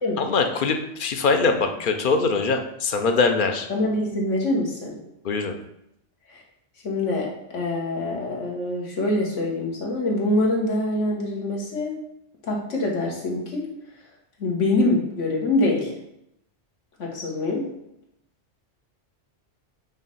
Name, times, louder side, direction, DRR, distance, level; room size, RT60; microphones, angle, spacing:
voice 1, 0.2-3.7 5.2-5.6, left 4 dB, 55° left, 6 dB, 0.7 m, -22 dB
voice 2, 3.7-5.0 6.3-6.4 6.8-12.0 12.4-13.7 14.4-15.9 17.0-17.7, left 2 dB, 85° left, -2 dB, 1.7 m, -24 dB
5.5 x 3.2 x 5.3 m, 0.81 s
omnidirectional pair, 1.2 m